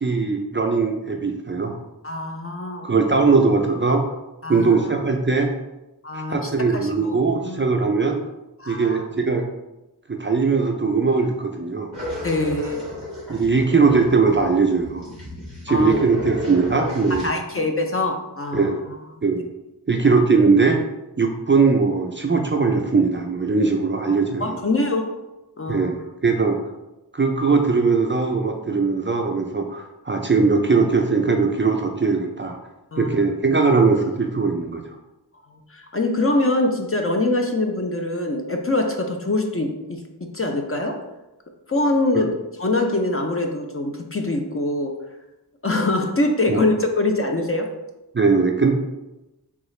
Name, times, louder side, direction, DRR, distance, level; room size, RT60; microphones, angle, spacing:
voice 1, 0.0-1.8 2.8-4.0 4.5-5.5 6.3-8.2 8.7-9.5 10.1-11.9 13.3-15.1 15.6-17.3 18.5-18.8 19.2-19.5 19.9-20.8 21.2-24.6 25.7-26.0 26.2-26.6 27.1-32.6 33.0-34.8 46.5-46.6 48.1-48.7, right 4 dB, 30° right, 3 dB, 0.4 m, -20 dB
voice 2, 2.0-2.9 4.4-5.0 6.0-7.6 8.6-9.0 12.2-12.8 15.7-16.0 17.2-18.7 24.1-25.2 25.6-25.9 32.9-33.2 35.7-41.0 41.7-44.9 45.6-47.7, left 2 dB, 35° left, 3 dB, 0.5 m, -24 dB
sound 1, 11.9-17.3, equal, 75° left, 1.3 m, -32 dB
3.6 x 2.4 x 3.1 m, 0.98 s
wide cardioid pair, 40°, 41 cm